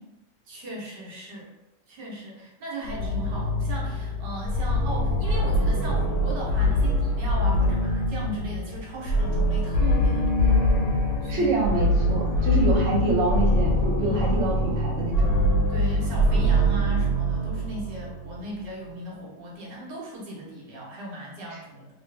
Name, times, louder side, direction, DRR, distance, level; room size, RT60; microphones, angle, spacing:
voice 1, 0.5-1.5 1.9-10.6 11.2-11.5 12.4-12.5 14.0-14.2 15.7-21.9, right 1 dB, 60° right, -4 dB, 1.4 m, -37 dB
sound 1, 2.8-18.5, equal, 60° left, 1.1 m, -24 dB
voice 2, 11.3-15.4 21.5-21.6, right 2 dB, 85° right, -3 dB, 0.6 m, -26 dB
3.3 x 3.0 x 3.2 m, 0.95 s
omnidirectional pair, 2.4 m